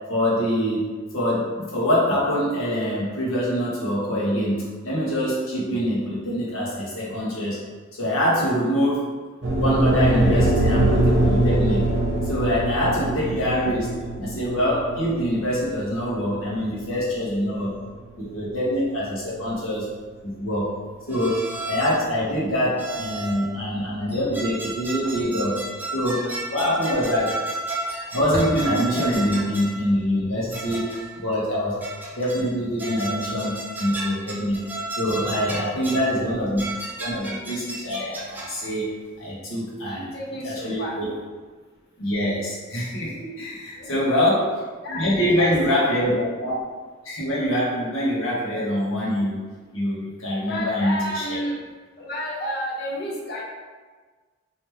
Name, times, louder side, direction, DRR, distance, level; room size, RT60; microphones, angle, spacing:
voice 1, 0.1-7.6 8.0-9.1 9.6-11.9 12.2-13.9 14.2-17.7 18.2-19.8 20.2-20.7 21.1-21.4 21.7-25.6 25.9-27.3 28.1-31.8 32.2-34.6 35.0-36.6 37.0-38.9 39.2-40.1 40.4-41.1 42.0-44.5 44.9-46.5 47.0-49.4 49.7-51.4, equal, 85° left, -7 dB, 1.3 m, -24 dB
sound 1, 9.4-17.7, right 1 dB, 65° right, 0.8 m, -22 dB
sound 2, 21.1-22.1 22.8-23.5 24.1-29.8 30.5-31.2 31.8-32.5 32.8-36.1 36.6-38.7, right 2 dB, 10° right, 0.4 m, -33 dB
voice 2, 39.8-41.0 43.5-44.4 44.8-45.9 50.4-51.6 52.0-53.4, equal, 50° left, -3 dB, 0.7 m, -32 dB
3.2 x 3.0 x 3.3 m, 1.4 s
head